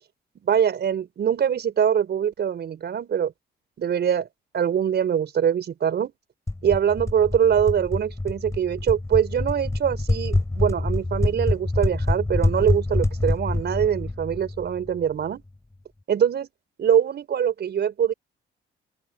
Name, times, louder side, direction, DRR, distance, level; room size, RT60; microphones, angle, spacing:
voice 1, 0.5-3.3 3.8-4.3 4.5-6.1 6.6-15.4 16.1-16.5 16.8-18.1, right 8 dB, 60° right, 4.9 m, -23 dB
sound 1, 6.5-15.1, left 2 dB, 15° left, 5.8 m, -26 dB
open air
cardioid pair, 90°, 20 cm